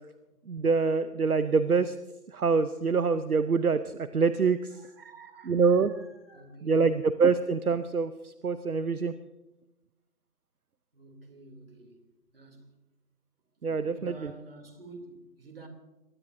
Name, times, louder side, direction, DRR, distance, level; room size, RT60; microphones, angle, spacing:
voice 1, 0.5-1.9 2.3-4.8 5.5-5.9 6.6-9.1 13.6-14.3, right 5 dB, 65° right, 0.8 m, -25 dB
voice 2, 4.7-7.0 10.9-12.0 12.3-12.7 13.6-15.7, right 3 dB, 35° right, 2.9 m, -49 dB
22.0 x 19.0 x 2.6 m
figure-of-eight pair, 165°, 47 cm